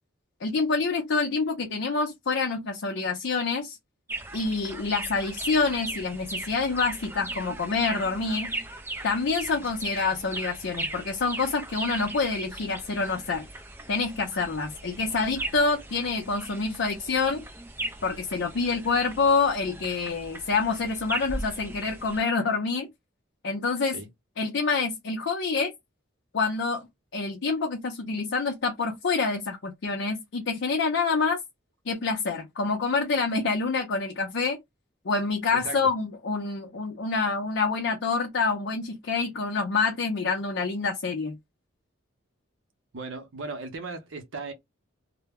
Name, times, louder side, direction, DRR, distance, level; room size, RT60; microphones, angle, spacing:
voice 1, 0.4-3.8 4.3-8.5 9.0-13.5 13.9-17.4 18.0-22.9 23.4-24.0 24.4-25.7 26.3-26.9 27.1-31.4 31.9-34.6 35.0-41.4, left 4 dB, 60° left, 0.5 m, -27 dB
sound 1, 4.1-22.2, right 2 dB, 10° right, 0.3 m, -38 dB
voice 2, 42.9-44.5, right 3 dB, 75° right, 0.7 m, -37 dB
2.1 x 2.0 x 3.4 m
head